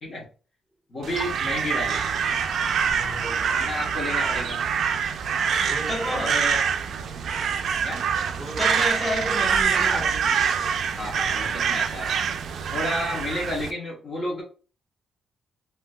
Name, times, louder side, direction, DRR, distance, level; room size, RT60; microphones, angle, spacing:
voice 1, 0.9-2.0 3.5-4.7 6.0-6.6 7.8-8.0 9.8-10.0 11.0-12.2 12.7-14.4, left 1 dB, 35° left, 1.1 m, -31 dB
Crow, 1.0-13.7, right 7 dB, 55° right, 0.4 m, -25 dB
voice 2, 2.8-3.6 5.6-6.4 8.3-10.9, equal, 5° left, 1.3 m, -32 dB
3.6 x 2.7 x 2.3 m
cardioid pair, 155°, 0 cm